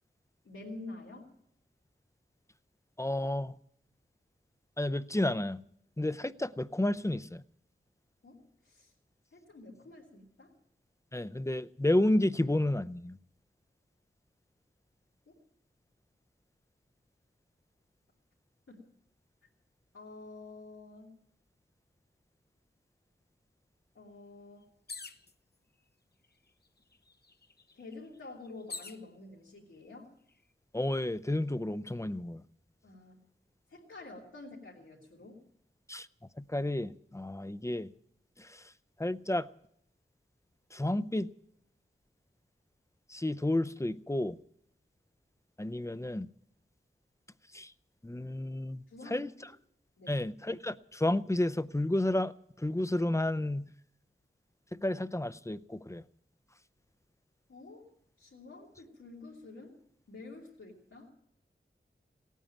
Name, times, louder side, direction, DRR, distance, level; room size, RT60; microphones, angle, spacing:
voice 1, 0.4-1.3 8.2-8.9 9.3-10.5 15.3-15.4 18.7-18.8 19.9-21.1 23.9-24.6 27.7-30.1 32.8-33.2 33.7-35.4 48.9-49.5 50.0-50.2 57.5-59.8 60.1-61.1, left 2 dB, 90° left, 3.2 m, -49 dB
voice 2, 3.0-3.6 4.8-5.6 6.0-7.4 11.1-13.2 30.7-32.4 35.9-36.1 36.4-37.9 38.4-38.6 39.0-39.5 40.7-41.3 43.1-44.4 45.6-46.3 47.5-47.7 48.0-49.3 50.1-52.3 52.6-53.7 54.7-56.0, left 1 dB, 15° left, 0.6 m, -31 dB
sound 1, 24.9-25.3 26.2-26.3 26.7-29.0 29.8-30.3, left 3 dB, 50° left, 0.9 m, -46 dB
17.5 x 9.2 x 9.0 m
wide cardioid pair, 50°, 21 cm